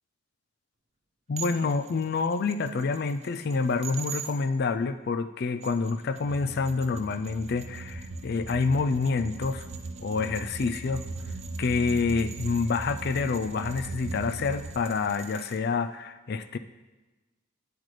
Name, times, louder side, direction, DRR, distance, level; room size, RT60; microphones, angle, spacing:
voice 1, 1.3-9.7 10.0-11.1 11.6-16.6, left 4 dB, 50° left, 11 dB, 0.4 m, -27 dB
sound 1, 1.4-4.3 5.4-15.6, right 8 dB, 30° right, 0.4 m, -46 dB
sound 2, 6.2-14.7, right 3 dB, 70° right, 0.8 m, -39 dB
9.1 x 8.0 x 3.3 m, 1.2 s
head